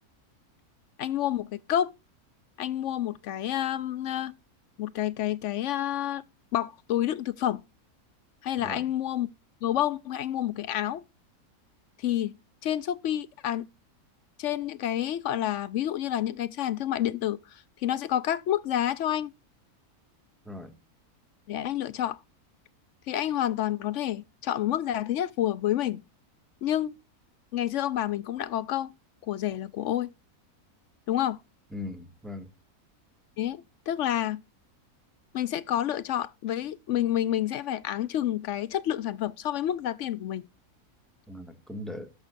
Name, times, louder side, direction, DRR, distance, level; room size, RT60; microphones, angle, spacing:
voice 1, 1.0-1.9 2.6-4.3 4.8-6.2 6.5-7.6 8.4-9.3 9.6-11.0 12.0-12.3 12.6-13.7 14.4-19.3 21.5-22.2 23.1-26.0 26.6-27.0 27.5-28.9 29.3-30.1 31.1-31.4 33.4-34.4 35.3-40.4, left 11 dB, 65° left, 0.8 m, -29 dB
voice 2, 8.6-8.9 20.4-20.7 31.7-32.5 41.3-42.1, left 2 dB, ahead, 1.6 m, -39 dB
13.0 x 5.8 x 2.5 m
omnidirectional pair, 1.6 m